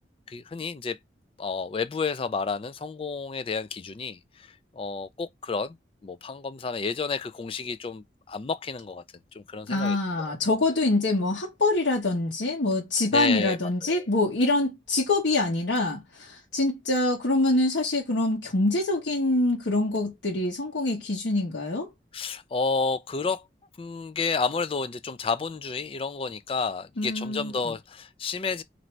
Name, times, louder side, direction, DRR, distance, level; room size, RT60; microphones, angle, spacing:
voice 1, 0.3-1.0 1.4-5.8 6.0-9.0 9.3-10.0 13.1-13.6 13.8-14.0 22.1-23.4 23.8-28.6, left 4 dB, 30° left, 0.3 m, -30 dB
voice 2, 9.7-21.9 27.0-27.7, left 2 dB, 80° left, 0.9 m, -25 dB
3.1 x 2.6 x 4.4 m
head